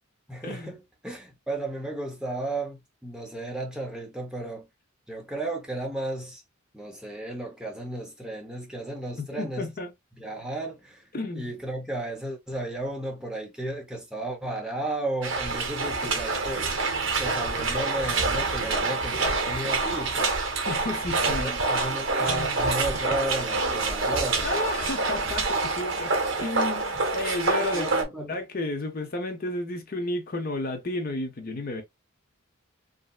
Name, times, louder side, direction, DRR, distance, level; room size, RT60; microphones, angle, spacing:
voice 1, 0.3-4.7 5.1-6.4 6.7-9.7 10.2-11.1 11.4-16.7 17.2-20.4 21.2-24.6 26.9-27.0 27.7-28.4, right 2 dB, 5° right, 0.6 m, -34 dB
voice 2, 9.2-9.9 11.1-11.5 20.7-21.6 22.3-22.6 24.4-27.9 28.2-31.8, left 2 dB, 40° left, 0.6 m, -32 dB
sound 1, 15.2-28.0, right 3 dB, 60° right, 0.9 m, -27 dB
3.1 x 2.6 x 2.3 m
head